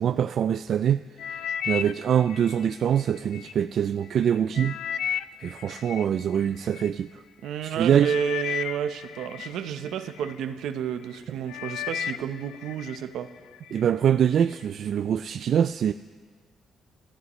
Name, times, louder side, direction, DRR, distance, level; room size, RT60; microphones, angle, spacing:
voice 1, 0.0-4.8 5.4-7.1 7.6-8.1 13.7-15.9, right 9 dB, 65° right, 11 dB, 0.3 m, -24 dB
sound 1, 1.2-3.5 4.0-6.9 7.6-7.7 8.0-10.4 10.9-11.2 11.5-13.0 13.4-13.8 14.4-14.5, left 9 dB, 85° left, 0.4 m, -34 dB
voice 2, 7.4-13.3, right 8 dB, 85° right, 9 dB, 0.8 m, -31 dB
26.5 x 14.0 x 3.1 m, 1.5 s
cardioid pair, 90°, 0 cm